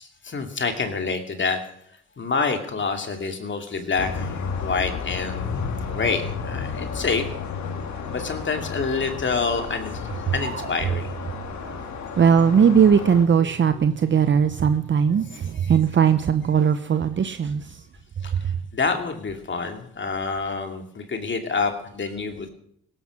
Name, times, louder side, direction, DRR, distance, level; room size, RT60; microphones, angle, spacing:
voice 1, 0.0-1.6 2.2-7.3 8.1-10.0 10.3-11.2 18.2-22.5, left 4 dB, 40° left, 2.6 m, -27 dB
sound 1, 4.0-13.2, left 5 dB, 65° left, 2.4 m, -32 dB
voice 2, 12.1-17.8 18.3-18.5, right 7 dB, 40° right, 0.8 m, -19 dB
17.0 x 13.0 x 6.0 m
cardioid pair, 90°, 30 cm